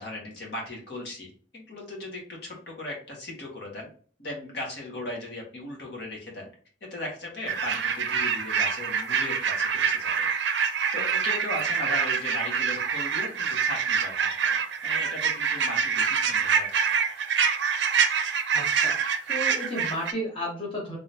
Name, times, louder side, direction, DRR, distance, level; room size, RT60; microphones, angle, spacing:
voice 1, 0.0-3.9 4.2-6.5 6.8-10.3 10.9-17.0, left 2 dB, 65° left, -2 dB, 1.5 m, -37 dB
sound 1, 7.5-20.1, right 6 dB, 75° right, 0.5 m, -26 dB
voice 2, 18.5-19.0 19.3-21.0, equal, 30° left, -4 dB, 1.3 m, -33 dB
3.7 x 3.5 x 2.7 m, 0.43 s
head